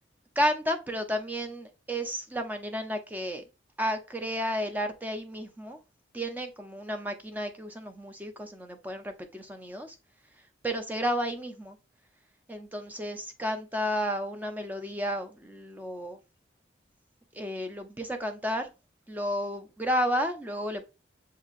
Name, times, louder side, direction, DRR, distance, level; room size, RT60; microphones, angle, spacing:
voice 1, 0.4-3.4 3.8-5.8 6.1-10.0 10.6-11.8 12.5-16.2 17.3-18.7 19.1-20.9, equal, 10° right, 0.5 m, -32 dB
7.1 x 2.8 x 2.5 m
head